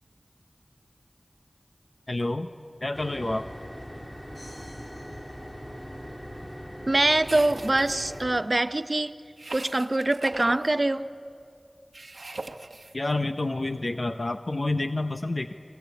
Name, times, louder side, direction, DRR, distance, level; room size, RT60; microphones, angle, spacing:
voice 1, 2.1-2.5 2.8-3.5 12.9-15.5, left 2 dB, 50° left, 0.8 m, -28 dB
sound 1, 2.9-8.4, equal, 5° left, 1.7 m, -41 dB
sound 2, 4.3-6.3, left 1 dB, 70° left, 6.6 m, -53 dB
voice 2, 6.8-9.1 9.5-11.1, right 2 dB, 45° right, 0.7 m, -24 dB
sound 3, 7.2-8.2 9.4-10.7 11.9-12.9, right 2 dB, 75° right, 1.0 m, -40 dB
29.5 x 20.5 x 8.1 m
wide cardioid pair, 55°, 0 cm